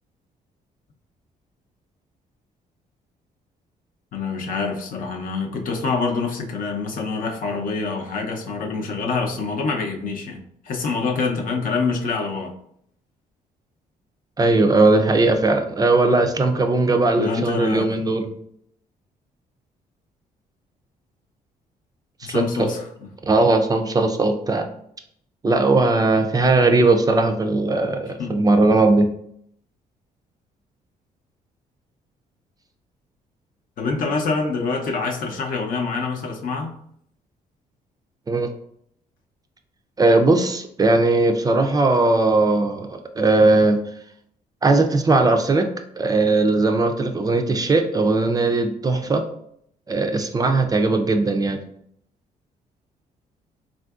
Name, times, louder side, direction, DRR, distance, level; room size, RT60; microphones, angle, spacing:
voice 1, 4.1-10.4 10.6-12.5 17.2-17.9 22.2-22.9 28.2-28.4 33.8-36.8, left 4 dB, 60° left, 3 dB, 0.6 m, -26 dB
voice 2, 14.4-18.3 22.3-22.7 23.3-24.7 25.4-29.1 38.3-38.5 40.0-43.8 44.6-45.7 46.0-49.2 49.9-51.6, right 2 dB, 25° right, 6 dB, 0.3 m, -18 dB
3.6 x 2.5 x 2.3 m, 0.69 s
cardioid pair, 85°, 16 cm